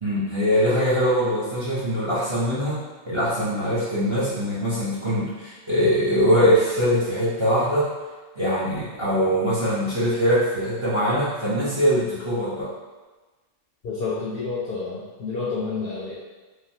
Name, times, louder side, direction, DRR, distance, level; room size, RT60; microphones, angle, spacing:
voice 1, 0.0-2.8 3.1-7.9 8.4-12.7, equal, 30° right, -10 dB, 0.6 m, -22 dB
voice 2, 13.8-16.1, left 4 dB, 60° left, -7 dB, 0.6 m, -29 dB
3.1 x 2.2 x 2.6 m, 1.2 s
omnidirectional pair, 1.3 m